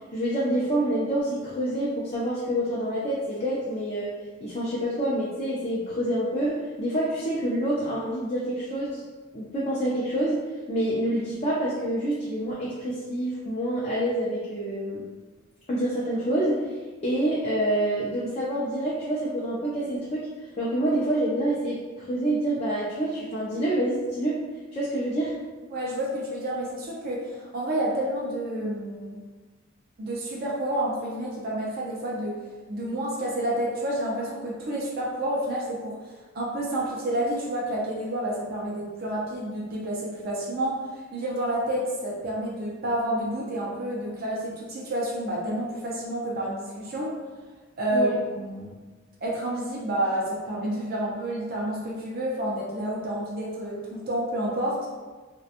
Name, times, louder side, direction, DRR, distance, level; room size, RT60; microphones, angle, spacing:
voice 1, 0.1-4.1 4.4-9.0 9.3-10.4 10.7-15.0 15.7-16.6 17.0-20.3 20.6-24.4 24.7-25.3 47.9-48.1, right 1 dB, 30° left, -7 dB, 0.4 m, -27 dB
voice 2, 25.7-29.2 30.0-32.4 32.7-36.0 36.3-47.1 47.8-48.8 49.2-54.9, right 1 dB, 50° right, -4 dB, 0.5 m, -29 dB
2.7 x 2.2 x 2.4 m, 1.3 s
head